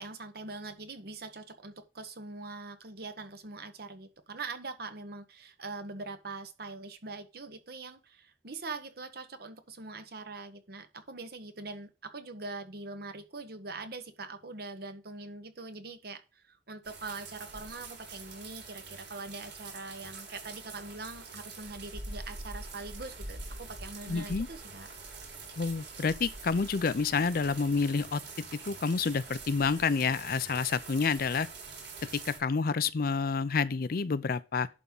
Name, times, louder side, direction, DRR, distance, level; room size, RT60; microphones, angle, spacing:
voice 1, 0.0-24.9, right 3 dB, 60° right, 1.2 m, -43 dB
sound 1, 16.8-32.4, right 3 dB, 80° right, 3.8 m, -45 dB
voice 2, 24.1-24.5 25.6-28.2 28.7-31.5 32.1-34.7, left 5 dB, 55° left, 0.5 m, -29 dB
11.0 x 3.7 x 5.4 m
head